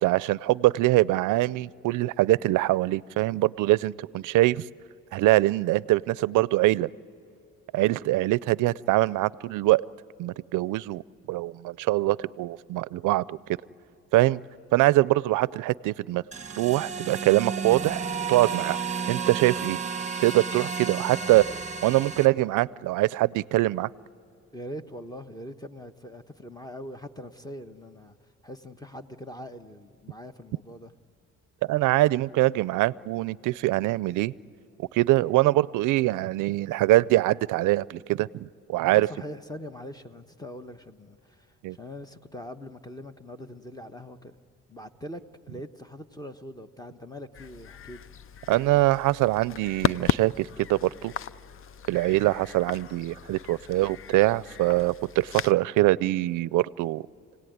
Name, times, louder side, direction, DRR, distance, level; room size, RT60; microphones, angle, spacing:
voice 1, 0.0-4.6 5.1-6.9 7.7-9.8 10.2-11.0 11.3-13.4 14.1-14.4 14.7-16.2 16.6-18.0 18.3-18.8 19.1-19.8 20.2-21.5 21.8-23.9 31.7-34.3 34.8-39.1 41.6-41.8 48.5-51.1 51.9-57.0, right 17 dB, 85° right, 0.5 m, -23 dB
sound 1, 16.3-22.3, right 5 dB, 25° right, 1.1 m, -32 dB
voice 2, 24.5-28.2 28.4-30.9 38.9-44.4 44.7-48.0, equal, 15° left, 1.1 m, -42 dB
sound 2, 47.3-55.5, left 9 dB, 45° left, 0.6 m, -35 dB
29.5 x 18.0 x 9.4 m
cardioid pair, 90°, 30 cm